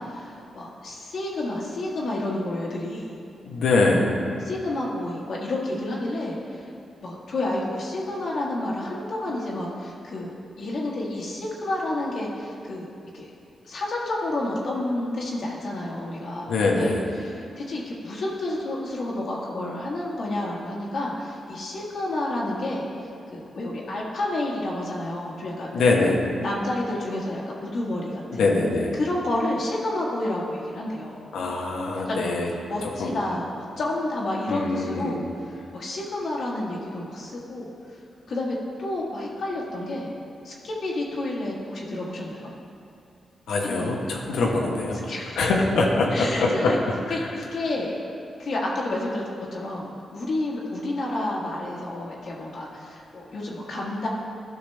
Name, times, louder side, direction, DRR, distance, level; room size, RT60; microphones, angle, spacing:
voice 1, 0.0-3.2 4.4-6.7 7.0-13.3 13.6-22.9 23.3-25.7 26.0-26.2 26.4-28.5 28.9-31.3 31.9-35.2 35.7-37.7 38.3-40.1 40.4-42.5 43.6-44.0 45.1-45.4 46.1-46.8 47.1-47.9 48.4-49.2 49.5-54.1, left 1 dB, 70° left, -4 dB, 1.4 m, -30 dB
voice 2, 3.4-4.1 16.5-17.0 25.7-26.2 28.4-28.9 31.3-32.5 33.0-33.1 34.5-35.2 43.5-45.0 45.4-46.7, left 3 dB, 85° left, -1 dB, 1.0 m, -23 dB
12.0 x 5.8 x 3.3 m, 2.6 s
supercardioid pair, 55°, 0 cm